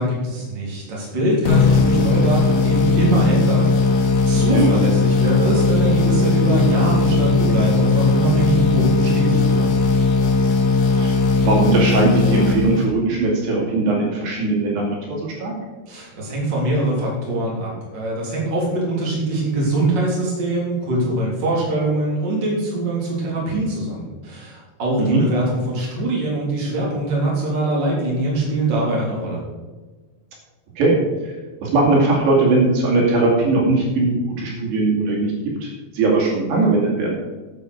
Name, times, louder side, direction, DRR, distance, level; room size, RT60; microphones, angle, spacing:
voice 1, 0.0-9.8 15.9-29.4, right 2 dB, 25° right, -4 dB, 3.7 m, -23 dB
sound 1, 1.5-13.2, left 4 dB, 65° left, 3.2 m, -18 dB
voice 2, 4.3-4.7 11.0-15.5 25.0-25.2 30.8-31.0 31.2-31.3 31.6-35.3 35.6-37.1, right 3 dB, 75° right, -2 dB, 4.7 m, -19 dB
11.0 x 8.0 x 6.4 m, 1.3 s
omnidirectional pair, 5.0 m